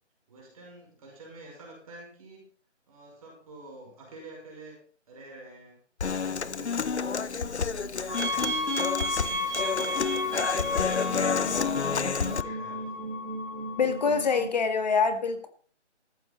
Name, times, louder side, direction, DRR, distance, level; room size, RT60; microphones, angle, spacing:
voice 1, 0.3-2.5 2.9-4.8 5.1-5.8 6.3-9.0 9.6-11.4 12.1-13.1, right 2 dB, 30° right, 5.8 m, -48 dB
Human voice / Acoustic guitar, 6.0-12.4, left 5 dB, 65° left, 1.0 m, -29 dB
sound 1, 8.1-14.5, left 1 dB, 45° right, 5.9 m, -33 dB
voice 2, 13.8-15.5, left 5 dB, 35° left, 2.0 m, -25 dB
14.0 x 11.5 x 4.2 m
figure-of-eight pair, 165°, 36 cm